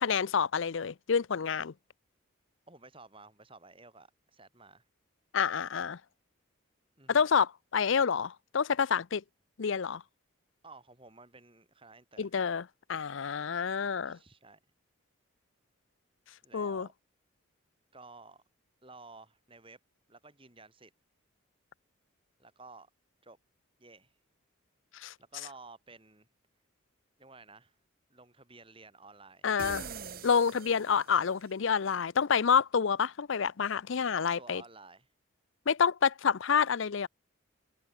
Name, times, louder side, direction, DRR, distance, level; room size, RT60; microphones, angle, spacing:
voice 1, 0.0-1.7 5.3-6.0 7.1-9.2 9.6-10.0 12.2-14.2 16.5-16.9 24.9-25.1 29.4-29.9 30.2-34.6 35.7-37.1, left 6 dB, 65° left, 0.5 m, -28 dB
voice 2, 2.7-4.9 7.0-7.3 10.6-12.3 14.0-14.6 16.4-16.9 17.9-18.4 18.8-19.8 20.1-20.9 22.4-22.9 23.2-23.4 23.8-24.1 25.2-26.3 27.2-27.8 28.1-29.5 34.1-35.1, right 3 dB, 25° right, 7.1 m, -53 dB
sound 1, 29.6-31.4, right 6 dB, 45° right, 1.2 m, -43 dB
head